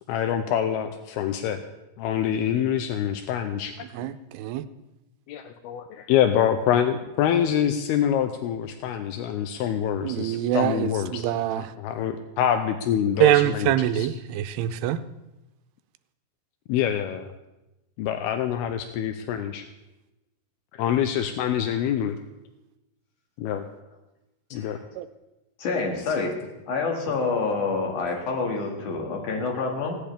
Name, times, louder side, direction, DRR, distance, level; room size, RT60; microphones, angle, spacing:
voice 1, 0.1-1.6 2.0-3.7 5.3-11.3 11.6-14.1 16.7-17.3 18.0-19.6 20.7-22.2 23.4-23.7 24.5-24.8, left 9 dB, 80° left, 8 dB, 2.5 m, -25 dB
voice 2, 3.9-4.7 10.0-11.7 13.2-15.0 25.0-25.1, right 13 dB, 85° right, 11 dB, 2.7 m, -24 dB
voice 3, 25.6-26.3 26.7-30.0, left 4 dB, 55° left, 1 dB, 3.3 m, -27 dB
17.5 x 17.0 x 3.5 m, 1.0 s
omnidirectional pair, 4.7 m